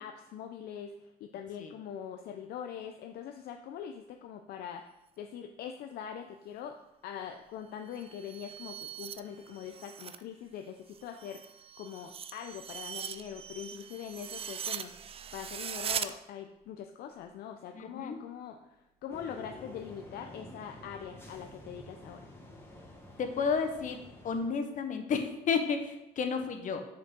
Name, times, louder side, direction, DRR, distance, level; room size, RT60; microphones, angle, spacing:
voice 1, 0.0-4.9 5.2-6.8 7.0-11.4 11.8-22.3, left 8 dB, 70° left, 5 dB, 0.5 m, -43 dB
sound 1, 7.8-10.2 10.6-16.1, right 8 dB, 35° right, 0.4 m, -41 dB
voice 2, 17.7-18.2 23.2-24.0 24.2-26.8, left 5 dB, 50° left, 6 dB, 1.1 m, -31 dB
sound 2, 19.1-24.5, left 1 dB, 15° left, 1.4 m, -50 dB
6.1 x 5.1 x 5.3 m, 0.91 s
cardioid pair, 110°, 17 cm